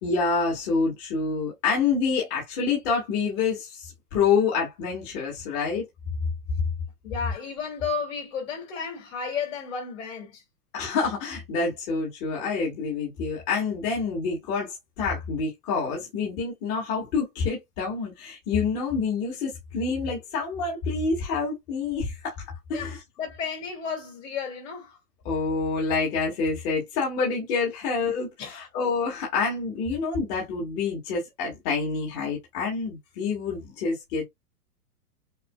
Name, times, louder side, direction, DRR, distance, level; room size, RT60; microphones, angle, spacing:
voice 1, 0.0-5.9 10.7-22.4 22.7-23.0 25.3-34.2, left 4 dB, 35° left, 1.8 m, -27 dB
voice 2, 7.0-10.4 22.7-24.9 28.4-28.7, left 5 dB, 55° left, 2.5 m, -33 dB
6.4 x 2.2 x 2.4 m
hypercardioid pair, 150°, 46 cm